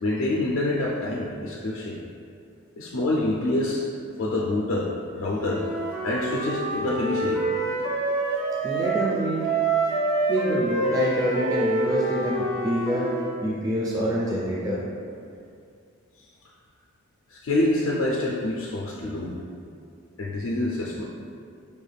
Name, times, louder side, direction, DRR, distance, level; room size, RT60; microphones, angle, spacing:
voice 1, 0.0-2.0 2.8-3.9 4.2-5.7 6.0-7.4 16.2-16.3 17.3-19.4 20.2-21.0, left 2 dB, 80° left, -4 dB, 0.4 m, -26 dB
Wind instrument woodwind instrument, 5.4-9.1 9.4-13.4, right 3 dB, 90° right, 0.7 m, -27 dB
voice 2, 8.6-9.4 10.3-13.1 13.4-14.8, equal, 15° right, -6 dB, 0.4 m, -26 dB
5.3 x 2.3 x 3.2 m, 2.4 s
head